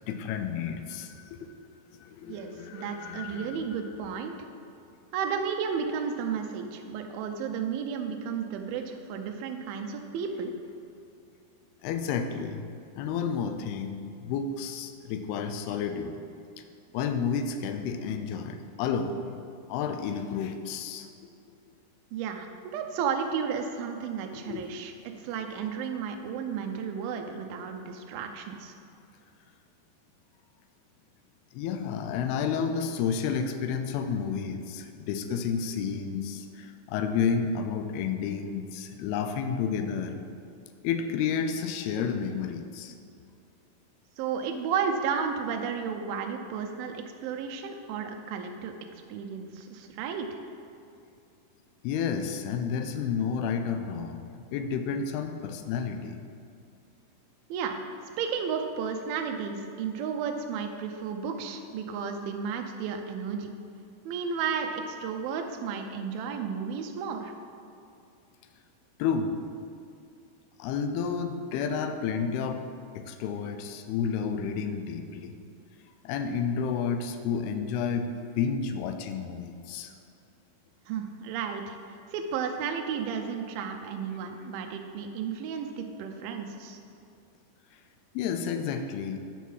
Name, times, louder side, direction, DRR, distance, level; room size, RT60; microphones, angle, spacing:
voice 1, 0.0-1.5 1.9-3.6 11.8-12.6 13.0-16.2 16.9-19.3 19.7-21.1 24.4-24.7 31.5-40.2 40.8-42.9 51.8-54.2 54.5-56.2 69.0-69.4 70.6-72.7 73.0-75.4 76.0-79.9 88.1-89.2, left 6 dB, 80° left, 7 dB, 2.4 m, -31 dB
voice 2, 2.3-4.3 5.1-10.5 22.1-22.5 22.7-28.7 44.2-48.7 49.1-50.3 57.5-57.8 58.2-63.5 64.1-67.3 80.9-81.8 82.1-86.8, right 6 dB, 80° right, 4 dB, 2.2 m, -33 dB
10.0 x 4.6 x 5.5 m, 2.5 s
omnidirectional pair, 4.9 m